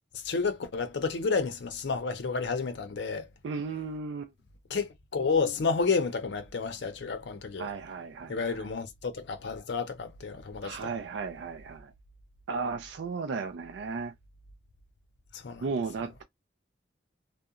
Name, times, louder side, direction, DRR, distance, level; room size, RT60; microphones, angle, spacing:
voice 1, 0.2-3.3 4.7-7.7 8.3-10.8 15.3-15.6, left 4 dB, 80° left, 0.5 m, -30 dB
voice 2, 3.4-4.3 7.6-8.7 10.6-11.9 12.5-14.1 15.6-16.2, right 4 dB, 90° right, 0.4 m, -35 dB
2.7 x 2.1 x 2.4 m
head